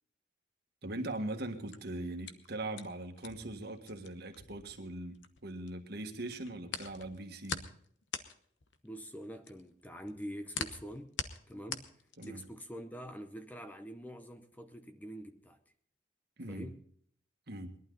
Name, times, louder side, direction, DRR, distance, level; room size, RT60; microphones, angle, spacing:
voice 1, 0.8-5.2 5.4-7.7 12.2-12.4 16.4-16.7 17.5-17.7, right 2 dB, 60° right, 1.6 m, -40 dB
sound 1, 1.5-5.7 6.0-12.6, left 6 dB, 75° left, 1.0 m, -43 dB
voice 2, 8.8-11.2 11.5-15.6 16.5-16.8, equal, 10° left, 0.7 m, -45 dB
21.0 x 12.0 x 3.9 m
head